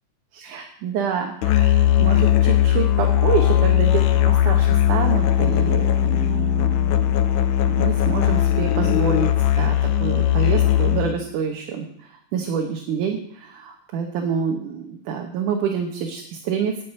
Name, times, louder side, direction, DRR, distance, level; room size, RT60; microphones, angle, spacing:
voice 1, 0.3-7.2 7.7-9.3 9.6-11.9 12.3-16.7, right 7 dB, 80° right, 2 dB, 2.7 m, -27 dB
Musical instrument, 1.4-11.2, left 11 dB, 80° left, 2.2 m, -18 dB
10.0 x 7.2 x 9.1 m, 0.68 s
omnidirectional pair, 3.5 m